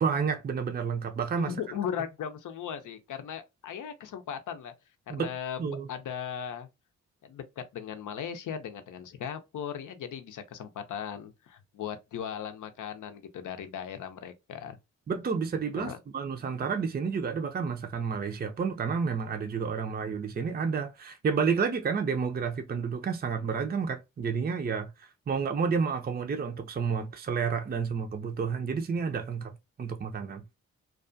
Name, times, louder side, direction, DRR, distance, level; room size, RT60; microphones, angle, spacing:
voice 1, 0.0-1.5 5.1-5.9 15.1-30.4, right 5 dB, 30° right, 0.5 m, -30 dB
voice 2, 1.3-4.7 5.1-5.6 5.9-6.7 7.2-14.8 15.8-16.0, left 8 dB, 65° left, 0.6 m, -37 dB
2.3 x 2.3 x 2.5 m
supercardioid pair, 45°, 33 cm